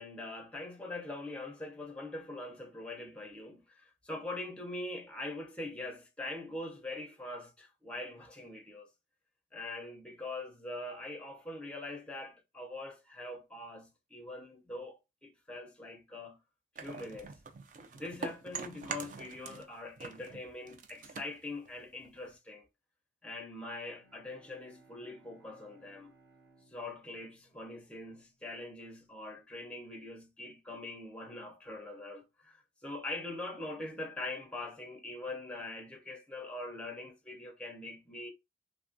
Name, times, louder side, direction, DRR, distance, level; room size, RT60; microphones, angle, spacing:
voice 1, 0.0-8.9 9.5-16.4 16.8-17.4 17.9-22.7 23.2-26.1 26.7-38.3, left 2 dB, 5° left, 0.5 m, -43 dB
sound 1, 16.8-19.7 20.0-22.4, right 5 dB, 45° right, 0.4 m, -44 dB
Bowed string instrument, 23.9-28.5, right 3 dB, 80° right, 1.4 m, -64 dB
3.0 x 2.3 x 2.5 m
head